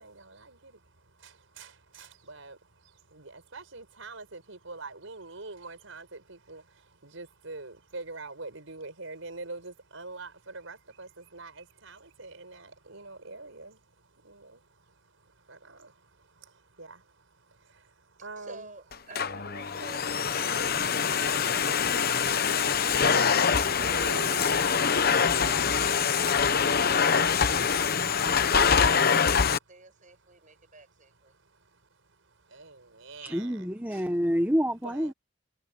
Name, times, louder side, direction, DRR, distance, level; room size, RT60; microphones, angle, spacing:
voice 1, 0.0-18.7 22.1-25.2 31.3-31.9 32.2-34.0 34.8-35.1, right 3 dB, 80° right, 4.9 m, -46 dB
voice 2, 18.2-21.9 23.7-31.3, right 2 dB, 40° right, 7.7 m, -52 dB
Domestic sounds home sounds, 18.9-29.6, left 6 dB, 50° left, 0.9 m, -24 dB
voice 3, 33.2-35.1, equal, 10° right, 1.4 m, -27 dB
head